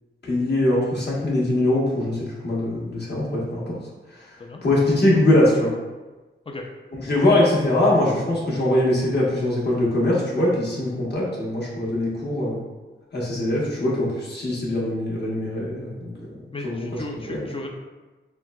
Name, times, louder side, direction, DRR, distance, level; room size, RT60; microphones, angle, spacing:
voice 1, 0.2-3.8 4.6-5.7 6.9-12.6 13.1-16.1 16.6-16.8 17.3-17.5, left 1 dB, 55° left, -5 dB, 1.0 m, -22 dB
voice 2, 16.5-17.7, left 2 dB, 25° left, 1 dB, 0.4 m, -35 dB
4.4 x 2.1 x 2.2 m, 1.2 s
wide cardioid pair, 80°, 21 cm